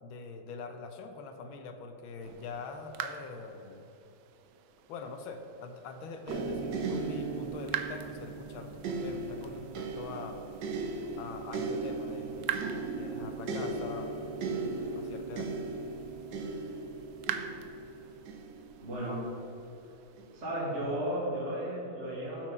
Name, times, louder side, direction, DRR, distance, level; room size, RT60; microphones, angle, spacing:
voice 1, 0.0-3.9 4.9-10.4 11.2-14.2 14.9-15.5, left 4 dB, 85° left, 6 dB, 1.6 m, -44 dB
sound 1, 2.2-20.5, right 9 dB, 85° right, 1.4 m, -45 dB
sound 2, 6.3-19.4 20.2-20.3, right 3 dB, 70° right, 1.4 m, -37 dB
voice 2, 18.8-19.4 20.3-22.5, right 1 dB, 35° right, -7 dB, 2.3 m, -34 dB
12.0 x 4.5 x 5.4 m, 3.0 s
omnidirectional pair, 2.2 m